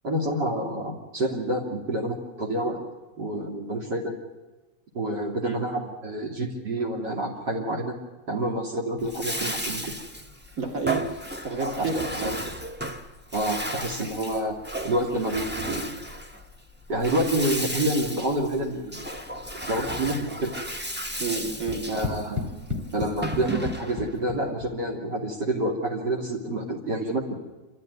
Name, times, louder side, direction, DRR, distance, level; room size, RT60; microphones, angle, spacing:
voice 1, 0.0-2.8 3.2-4.1 4.9-7.9 8.3-9.9 11.8-11.9 12.2-12.3 13.3-16.0 16.9-19.0 19.5-20.2 20.4-20.6 21.9-22.4 22.9-27.3, right 1 dB, 65° right, -1 dB, 3.3 m, -28 dB
Bathtub (filling or washing), 9.0-24.1, right 1 dB, 10° right, 0.6 m, -34 dB
voice 2, 10.6-11.1 11.4-12.4 21.2-22.2, right 4 dB, 45° right, 1 dB, 3.2 m, -30 dB
sound 1, 21.7-24.9, left 4 dB, 30° right, 2.7 m, -34 dB
27.5 x 14.0 x 9.5 m, 1.2 s
omnidirectional pair, 2.0 m